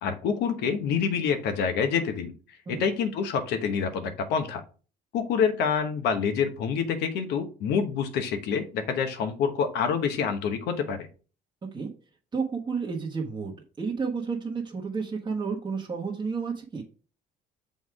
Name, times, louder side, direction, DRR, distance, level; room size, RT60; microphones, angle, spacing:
voice 1, 0.0-2.3 2.7-4.6 5.1-11.1, left 6 dB, 80° left, 8 dB, 1.1 m, -27 dB
voice 2, 12.3-16.8, right 5 dB, 25° right, -2 dB, 1.2 m, -31 dB
6.4 x 3.5 x 4.7 m, 0.37 s
cardioid pair, 110°, 17 cm